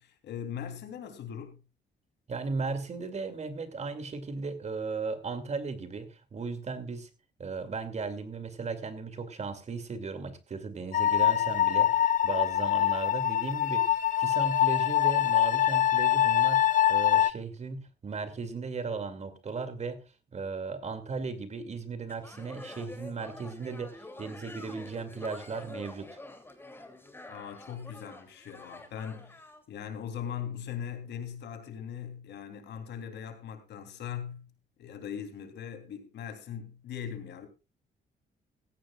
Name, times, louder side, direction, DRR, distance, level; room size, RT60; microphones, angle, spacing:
voice 1, 0.0-1.6 27.3-34.5 34.8-37.5, left 8 dB, 75° left, 3.2 m, -40 dB
voice 2, 2.3-7.1 7.4-20.0 20.3-26.2, right 4 dB, 40° right, 2.4 m, -36 dB
sound 1, 10.9-17.3, left 11 dB, 50° left, 0.6 m, -24 dB
sound 2, 22.1-29.6, left 2 dB, 10° left, 2.8 m, -47 dB
17.0 x 15.0 x 2.4 m
cardioid pair, 120°, 18 cm